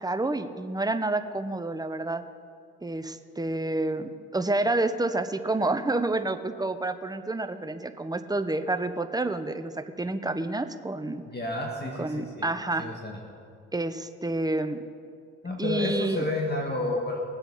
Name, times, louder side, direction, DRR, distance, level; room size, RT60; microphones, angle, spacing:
voice 1, 0.0-2.2 2.8-11.2 12.0-12.9 13.7-14.8 15.6-16.3, right 2 dB, 10° right, 9 dB, 1.0 m, -29 dB
voice 2, 11.3-12.5 12.8-13.2 15.4-17.2, left 2 dB, 30° left, -1 dB, 2.1 m, -30 dB
19.5 x 7.9 x 5.7 m, 2.3 s
hypercardioid pair, 50°, 34 cm